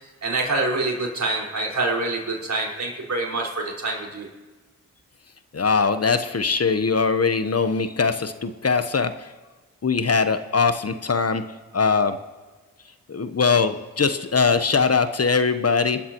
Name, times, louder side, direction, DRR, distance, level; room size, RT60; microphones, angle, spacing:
voice 1, 0.2-4.3, right 2 dB, 50° right, -2 dB, 5.1 m, -26 dB
voice 2, 5.5-9.3 9.8-11.4 11.7-12.2 13.1-16.0, left 5 dB, 45° left, 10 dB, 1.1 m, -21 dB
27.5 x 13.0 x 3.1 m, 1.3 s
supercardioid pair, 40°, 34 cm